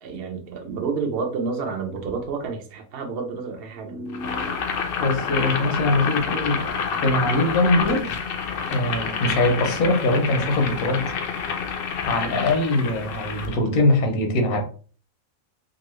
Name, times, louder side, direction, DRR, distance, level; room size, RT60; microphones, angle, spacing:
voice 1, 0.0-4.6, right 4 dB, 55° right, 3 dB, 0.8 m, -30 dB
Boiling, 4.1-13.6, left 6 dB, 65° left, 0.5 m, -28 dB
voice 2, 5.0-6.6 7.0-8.1 8.7-11.1 12.0-14.6, left 2 dB, 90° left, 4 dB, 1.2 m, -22 dB
2.9 x 2.4 x 3.0 m, 0.41 s
omnidirectional pair, 1.5 m